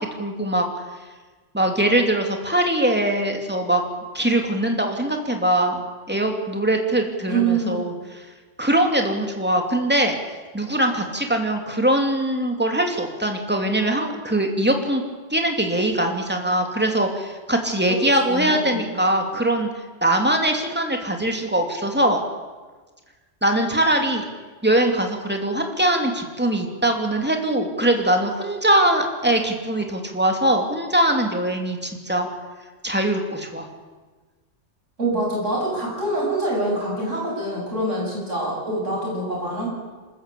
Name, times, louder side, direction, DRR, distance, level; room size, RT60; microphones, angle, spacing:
voice 1, 0.2-0.6 1.5-3.8 4.1-8.3 8.6-10.2 10.5-15.0 15.3-19.7 20.0-22.2 23.4-24.3 24.6-32.3 32.8-33.7, right 1 dB, 10° right, 3 dB, 2.7 m, -22 dB
voice 2, 7.3-7.8 17.9-18.8 35.0-39.7, right 2 dB, 75° right, -3 dB, 8.4 m, -25 dB
26.5 x 13.5 x 8.5 m, 1.3 s
omnidirectional pair, 1.3 m